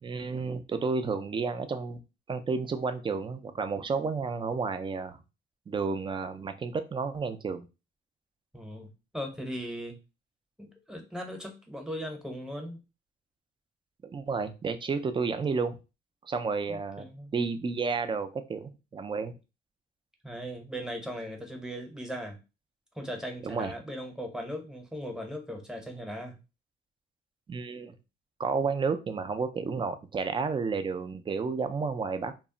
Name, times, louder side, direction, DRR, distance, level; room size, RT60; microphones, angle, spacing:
voice 1, 0.0-2.0 2.3-5.2 5.7-7.7 14.0-15.8 16.2-19.4 23.4-23.7 27.5-28.0 28.4-32.3, right 4 dB, 25° right, 9 dB, 0.4 m, -31 dB
voice 2, 8.5-10.0 10.6-12.8 16.7-17.3 20.2-22.4 23.0-26.4, equal, 5° right, 2 dB, 0.8 m, -38 dB
2.2 x 2.1 x 3.7 m, 0.28 s
cardioid pair, 90°, 20 cm